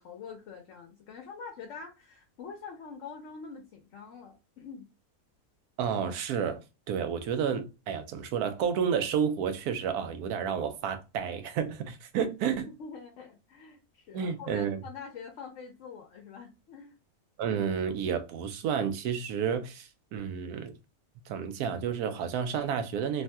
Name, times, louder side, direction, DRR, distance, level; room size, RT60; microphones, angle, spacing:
voice 1, 0.0-4.9 12.7-17.0, left 5 dB, 60° left, 0.9 m, -45 dB
voice 2, 5.8-6.6 6.9-12.7 14.1-14.8 17.4-20.7 21.3-23.2, right 7 dB, 80° right, 1.1 m, -31 dB
3.1 x 2.6 x 2.2 m
omnidirectional pair, 1.6 m